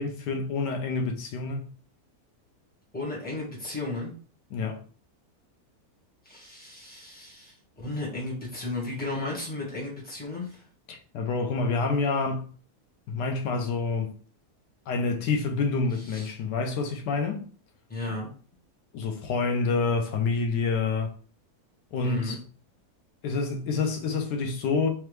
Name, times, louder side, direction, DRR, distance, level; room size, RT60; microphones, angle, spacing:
voice 1, 0.0-1.7 4.5-4.8 10.9-12.5 13.1-14.1 14.9-17.5 18.9-21.1 21.9-22.4 23.2-24.9, left 4 dB, 90° left, 1.4 m, -27 dB
voice 2, 2.9-4.1 6.2-10.6 16.1-16.3 17.9-18.3 22.0-22.4, left 2 dB, 5° left, 1.3 m, -34 dB
3.5 x 3.2 x 3.2 m
omnidirectional pair, 1.8 m